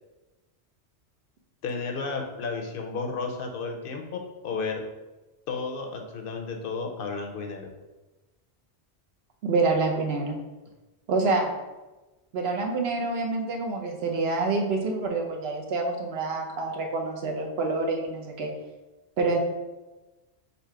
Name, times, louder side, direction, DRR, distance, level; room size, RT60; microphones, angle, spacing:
voice 1, 1.6-4.8 5.5-7.7, left 4 dB, 60° left, 3 dB, 0.8 m, -32 dB
voice 2, 9.4-10.4 11.1-11.5 12.3-18.5 19.2-19.4, right 3 dB, 70° right, 1 dB, 1.0 m, -27 dB
4.0 x 2.7 x 4.5 m, 1.1 s
omnidirectional pair, 1.1 m